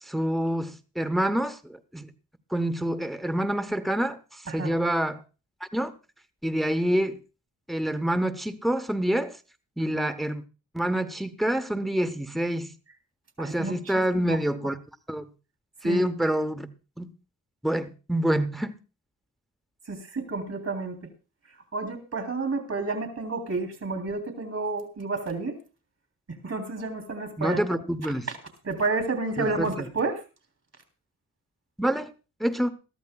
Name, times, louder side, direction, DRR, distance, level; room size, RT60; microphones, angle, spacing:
voice 1, 0.0-2.1 2.5-5.2 5.7-5.9 6.4-7.2 7.7-9.4 9.8-10.4 10.7-12.7 13.4-14.8 15.1-15.2 15.8-16.7 17.0-17.1 17.6-18.8 27.4-28.3 29.4-29.9 31.8-32.1 32.4-32.7, right 1 dB, ahead, 0.9 m, -27 dB
voice 2, 13.4-14.4 15.8-16.0 19.9-21.0 21.7-25.6 26.4-27.8 28.3-28.4 28.6-30.2, right 3 dB, 50° right, 3.4 m, -30 dB
20.5 x 14.0 x 2.3 m
wide cardioid pair, 90°, 33 cm